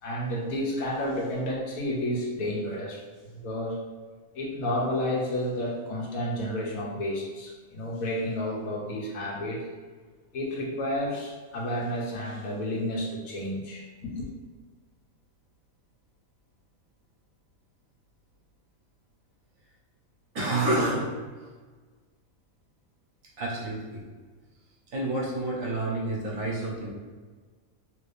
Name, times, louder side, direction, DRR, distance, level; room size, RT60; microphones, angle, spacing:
voice 1, 0.0-3.0 3.3-3.8 4.3-9.7 10.3-14.3, left 1 dB, 80° left, -4 dB, 1.3 m, -31 dB
voice 2, 20.3-21.1 23.4-24.0 24.9-26.9, right 2 dB, 65° right, -4 dB, 1.3 m, -28 dB
3.3 x 3.3 x 2.6 m, 1.4 s
omnidirectional pair, 1.5 m